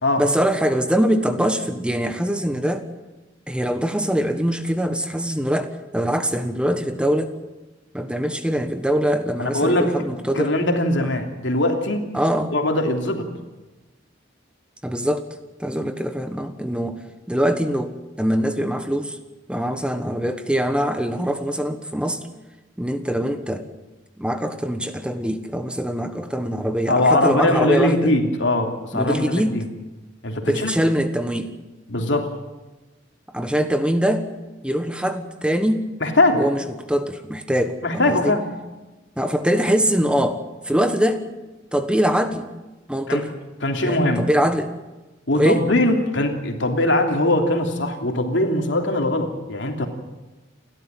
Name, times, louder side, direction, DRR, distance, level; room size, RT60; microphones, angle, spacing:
voice 1, 0.2-2.8 3.5-7.3 7.9-10.5 11.0-11.1 12.1-12.5 14.8-15.3 15.6-17.0 17.3-19.2 19.5-22.2 22.8-23.7 24.2-28.1 28.9-29.6 30.5-31.5 33.3-34.3 34.6-35.9 36.4-36.6 36.9-38.3 39.2-41.2 41.7-42.5 42.9-43.3 43.8-44.7 45.3-45.6, equal, 5° right, 8 dB, 1.2 m, -23 dB
voice 2, 9.4-9.9 10.3-12.0 12.5-13.3 26.9-29.6 30.2-30.7 31.9-32.3 36.0-36.4 37.8-38.5 43.1-43.2 43.6-44.2 45.3-49.9, left 1 dB, 70° left, 4 dB, 3.2 m, -21 dB
29.5 x 12.5 x 9.1 m, 1.1 s
head